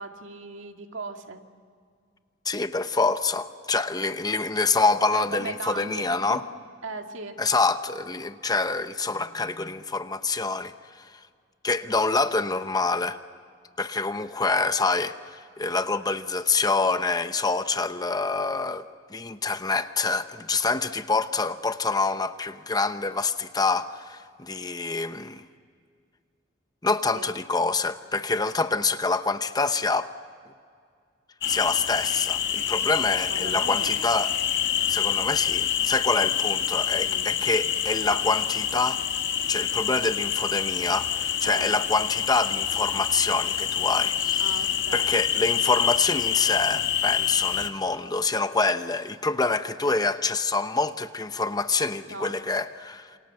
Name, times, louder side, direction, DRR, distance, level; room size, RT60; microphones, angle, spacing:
voice 1, 0.0-1.4 5.1-6.4 6.8-7.4 27.1-27.3 32.9-34.1 37.0-37.4 41.4-41.7 44.4-45.2 49.9-50.0 52.1-52.4, right 3 dB, 70° right, 4 dB, 2.2 m, -38 dB
voice 2, 2.4-6.4 7.4-11.1 11.6-13.2 13.8-18.9 19.1-25.4 26.8-30.1 31.5-34.4 34.9-39.0 39.5-44.4 44.9-53.2, left 3 dB, 20° left, 10 dB, 0.8 m, -26 dB
sound 1, 31.4-47.7, left 9 dB, 60° left, 1.7 m, -27 dB
28.5 x 26.5 x 7.8 m, 2.2 s
head